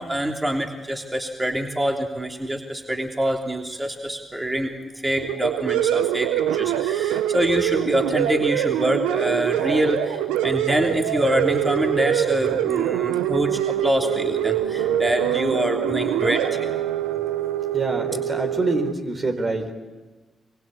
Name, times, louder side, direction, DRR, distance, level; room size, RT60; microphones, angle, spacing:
voice 1, 0.0-4.7 5.0-16.7, equal, 20° right, 2 dB, 3.2 m, -25 dB
sound 1, 5.2-18.9, right 11 dB, 85° right, 0.9 m, -24 dB
voice 2, 17.7-19.7, right 2 dB, 45° right, 5 dB, 4.3 m, -25 dB
24.5 x 23.0 x 8.8 m, 1.2 s
hypercardioid pair, 40°, 0 cm